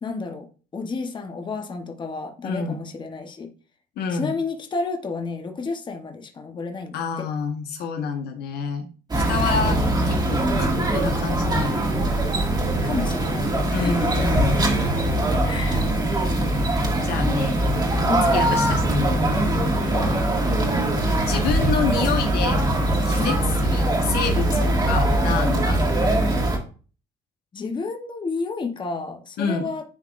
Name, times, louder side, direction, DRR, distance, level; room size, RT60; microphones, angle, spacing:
voice 1, 0.0-3.5 4.1-7.3 9.5-9.8 12.8-14.4 15.4-15.9 18.1-18.3 19.8-20.1 23.1-23.4 27.5-29.8, left 4 dB, 25° left, 0.9 m, -31 dB
voice 2, 2.4-2.8 4.0-4.4 6.9-8.9 9.1-12.1 13.7-15.3 17.0-17.6 18.3-19.2 21.3-22.7 23.0-23.4 23.7-25.8 29.4-29.7, left 5 dB, 70° left, 1.1 m, -28 dB
sound 1, 9.1-26.6, right 1 dB, 25° right, 1.7 m, -22 dB
10.5 x 3.9 x 2.5 m
cardioid pair, 110°, 17 cm